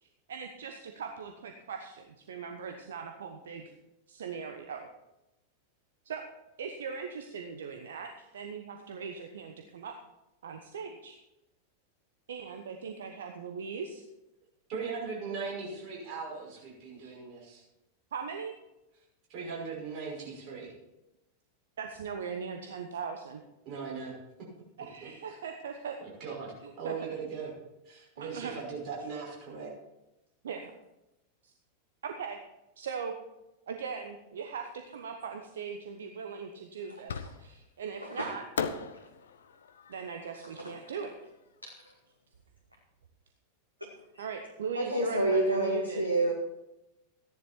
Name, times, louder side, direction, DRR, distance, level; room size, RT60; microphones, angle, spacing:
voice 1, 0.0-3.7 4.1-4.9 6.0-6.2 6.6-9.9 10.4-11.2 12.3-14.0 17.0-17.1 18.1-18.5 21.8-23.4 24.8-26.0 26.6-26.9 28.2-28.6 30.4-30.7 32.0-32.4 32.8-33.1 33.7-38.4 39.9-41.2 44.2-46.0, right 6 dB, 65° right, 5 dB, 1.0 m, -39 dB
voice 2, 14.7-17.6 19.3-20.7 23.7-24.1 25.0-25.1 26.0-27.5 27.9-29.7, right 5 dB, 40° right, -4 dB, 5.6 m, -39 dB
Fireworks, 37.1-37.7 38.6-41.7, left 6 dB, 65° left, 0.8 m, -39 dB
voice 3, 44.7-46.3, right 1 dB, 85° right, 0 dB, 1.5 m, -28 dB
14.0 x 10.5 x 4.4 m, 0.93 s
figure-of-eight pair, 90°, 0 cm